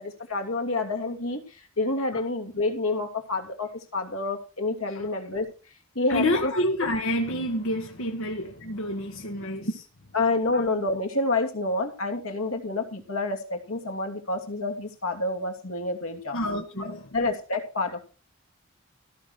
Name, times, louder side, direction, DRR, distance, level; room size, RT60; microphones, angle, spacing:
voice 1, 0.0-1.4 1.8-5.5 5.9-6.5 10.1-16.4 16.8-18.1, left 2 dB, 90° left, 2.8 m, -28 dB
voice 2, 6.1-9.9 10.5-10.7 16.3-17.1, left 1 dB, 70° left, 1.8 m, -28 dB
16.0 x 6.3 x 6.4 m
head